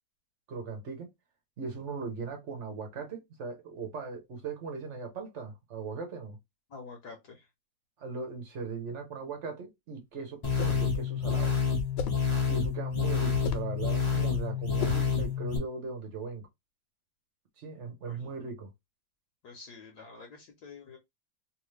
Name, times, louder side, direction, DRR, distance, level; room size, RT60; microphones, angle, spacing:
voice 1, 0.5-1.1 1.6-6.4 8.0-11.5 12.5-16.5 17.6-18.7, right 4 dB, 45° right, 1.0 m, -39 dB
voice 2, 6.7-7.5 18.1-18.3 19.4-21.0, left 4 dB, 65° left, 1.2 m, -48 dB
sound 1, 10.4-10.9 12.0-12.3 13.3-13.8 14.8-15.1, left 5 dB, 80° left, 1.3 m, -35 dB
sound 2, 10.4-15.6, left 6 dB, 35° left, 0.5 m, -28 dB
3.1 x 2.6 x 3.2 m
omnidirectional pair, 2.1 m